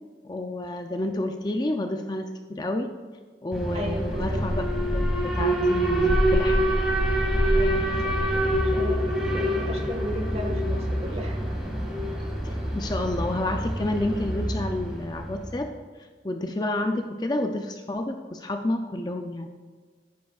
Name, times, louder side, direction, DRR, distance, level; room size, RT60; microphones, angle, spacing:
voice 1, 0.2-2.9 3.4-4.6 4.9-6.7 12.4-15.7 16.2-19.5, left 1 dB, 25° left, 5 dB, 0.4 m, -29 dB
Alarm, 3.5-15.5, right 1 dB, 5° right, 2.1 m, -25 dB
voice 2, 3.7-4.4 7.5-11.4, right 1 dB, 35° right, 2 dB, 1.6 m, -35 dB
14.0 x 10.5 x 2.4 m, 1.5 s
head